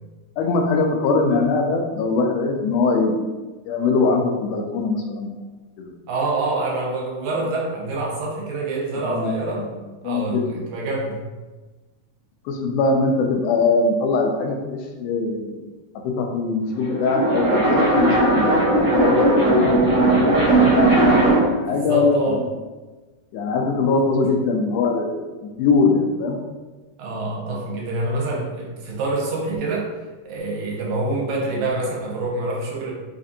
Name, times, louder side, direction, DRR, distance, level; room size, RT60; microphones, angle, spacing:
voice 1, 0.4-3.3 3.7-5.3 5.8-5.9 9.0-9.7 10.0-10.7 12.5-15.6 16.0-21.0 21.4-22.6 23.3-25.3 25.6-26.4, left 3 dB, 85° left, 2 dB, 2.0 m, -22 dB
voice 2, 6.1-9.6 10.0-11.2 21.6-22.4 27.0-29.9 30.3-32.9, right 2 dB, 80° right, -2 dB, 2.0 m, -26 dB
sound 1, 16.7-21.6, right 2 dB, 60° right, 0.9 m, -17 dB
5.0 x 2.5 x 2.6 m, 1.2 s
omnidirectional pair, 3.6 m